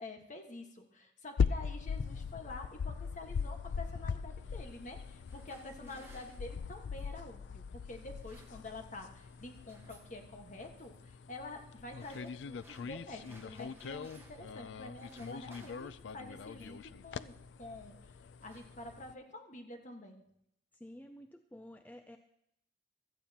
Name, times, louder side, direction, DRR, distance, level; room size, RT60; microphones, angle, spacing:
voice 1, 0.0-17.3 17.6-20.2, left 2 dB, 40° left, 4 dB, 1.4 m, -48 dB
sound 1, 1.4-19.1, left 6 dB, 75° left, 0.4 m, -40 dB
sound 2, 5.1-7.3 8.0-9.0 9.2-10.2 10.6-11.0 11.7-14.5 14.8-16.9 17.7-17.9 18.2-19.3, right 2 dB, 15° right, 1.3 m, -63 dB
voice 2, 20.7-22.2, left 1 dB, 10° left, 6 dB, 0.4 m, -51 dB
16.0 x 13.0 x 2.9 m, 0.78 s
head